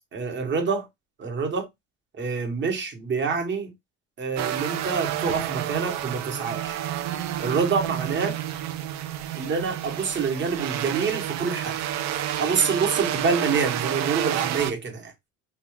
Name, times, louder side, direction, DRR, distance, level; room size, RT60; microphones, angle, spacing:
voice 1, 0.1-0.9 1.2-1.7 2.1-3.7 4.2-6.8 7.4-8.4 9.3-11.8 12.4-15.1, right 5 dB, 35° right, 1.3 m, -26 dB
sound 1, 4.4-14.7, right 11 dB, 60° right, 0.6 m, -30 dB
2.6 x 2.3 x 3.1 m
supercardioid pair, 95°, 31 cm